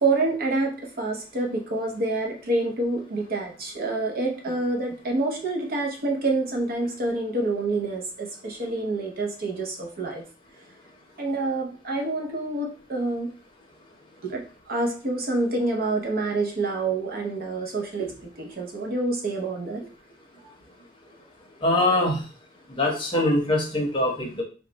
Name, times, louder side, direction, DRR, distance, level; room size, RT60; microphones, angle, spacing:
voice 1, 0.0-10.2 11.2-13.3 14.2-19.9, right 2 dB, 50° right, 1 dB, 0.7 m, -27 dB
voice 2, 21.6-22.2 22.7-24.4, left 1 dB, 25° left, 0 dB, 0.8 m, -23 dB
3.1 x 2.2 x 3.9 m, 0.36 s
head